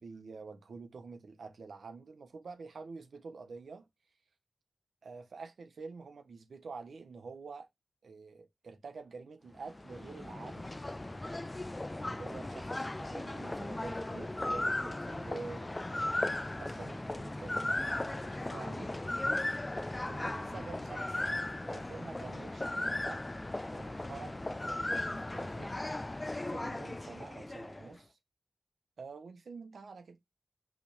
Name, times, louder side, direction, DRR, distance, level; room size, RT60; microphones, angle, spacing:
voice 1, 0.0-3.9 5.0-7.7 8.0-10.7 12.0-16.3 16.6-18.9 20.1-23.3 23.7-25.8 26.5-28.2 29.0-30.2, right 4 dB, 90° right, 1.4 m, -48 dB
sound 1, 9.6-28.0, left 2 dB, 30° left, 0.4 m, -37 dB
5.9 x 3.5 x 5.0 m
cardioid pair, 45°, 0 cm